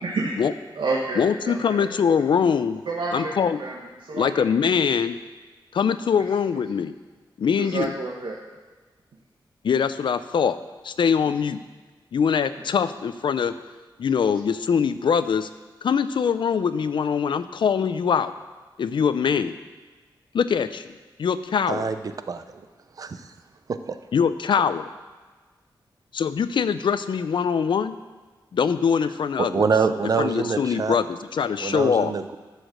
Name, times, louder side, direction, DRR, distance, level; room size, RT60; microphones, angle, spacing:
voice 1, 0.0-0.4 0.7-1.9 2.9-3.7 4.0-4.4 7.6-8.4, right 3 dB, 75° right, -2 dB, 1.2 m, -29 dB
voice 2, 1.2-2.8 3.1-3.6 4.1-5.2 5.7-6.9 7.4-7.9 9.6-10.6 10.8-11.6 12.1-13.5 14.0-15.5 15.8-18.3 18.8-19.6 20.3-20.9 21.2-21.9 24.1-24.8 26.1-28.0 28.5-29.7 30.2-32.1, left 6 dB, 70° left, 13 dB, 0.5 m, -23 dB
voice 3, 21.7-22.0 22.3-22.6 23.7-24.0 29.4-31.0 31.6-32.4, right 5 dB, 45° right, 10 dB, 0.6 m, -25 dB
13.0 x 5.0 x 6.4 m, 1.4 s
wide cardioid pair, 165°, 9 cm